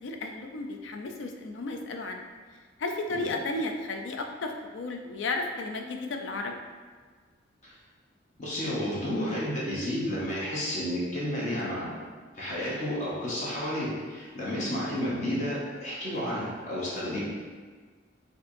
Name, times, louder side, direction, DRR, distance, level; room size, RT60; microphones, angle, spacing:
voice 1, 0.0-2.2 2.8-6.5 14.7-14.9, left 2 dB, 85° left, 4 dB, 0.4 m, -33 dB
voice 2, 8.4-11.9 12.3-17.2, equal, 40° left, -7 dB, 0.8 m, -31 dB
4.4 x 2.7 x 2.6 m, 1.5 s
head